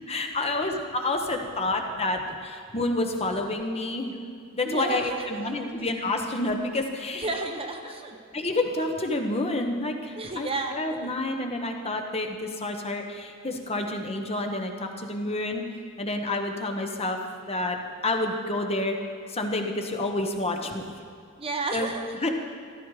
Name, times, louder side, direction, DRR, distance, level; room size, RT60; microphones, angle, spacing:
voice 1, 0.0-4.1 4.5-7.3 8.3-15.6 16.0-17.2 17.5-17.8 18.0-19.0 19.3-20.8 21.7-21.9 22.2-22.3, left 2 dB, 30° left, 4 dB, 1.1 m, -29 dB
voice 2, 4.6-5.7 7.1-8.2 10.2-11.1 21.4-22.3, right 3 dB, 25° right, 4 dB, 0.9 m, -33 dB
14.5 x 13.0 x 4.9 m, 2.2 s
head